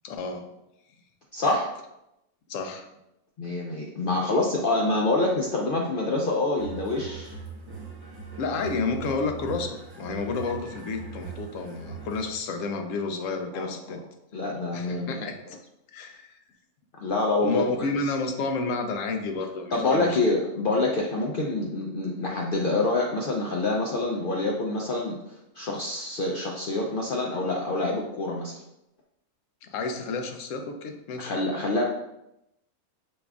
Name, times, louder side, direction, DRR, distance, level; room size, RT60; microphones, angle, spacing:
voice 1, 0.0-0.5 2.5-2.9 8.4-14.0 14.7-15.6 15.9-16.4 17.4-20.2 29.6-31.4, left 3 dB, 70° left, 5 dB, 0.9 m, -31 dB
voice 2, 1.3-1.7 3.4-7.3 13.5-14.0 14.3-15.2 17.0-17.9 19.7-28.6 31.2-31.8, left 2 dB, 90° left, -1 dB, 0.4 m, -26 dB
sound 1, 6.6-12.4, right 5 dB, 60° right, 1.6 m, -40 dB
5.1 x 3.5 x 2.3 m, 0.86 s
omnidirectional pair, 1.5 m